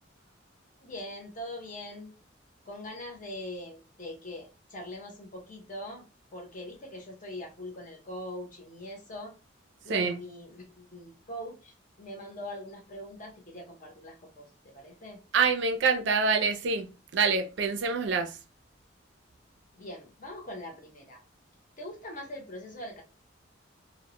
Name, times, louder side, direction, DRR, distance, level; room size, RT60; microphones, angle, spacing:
voice 1, 0.8-2.1 2.6-6.1 6.3-9.4 9.8-15.2 19.7-21.2 21.8-23.0, left 1 dB, 40° left, 0.7 m, -42 dB
voice 2, 15.3-18.4, right 5 dB, 65° right, 0.4 m, -26 dB
2.1 x 2.0 x 2.9 m
head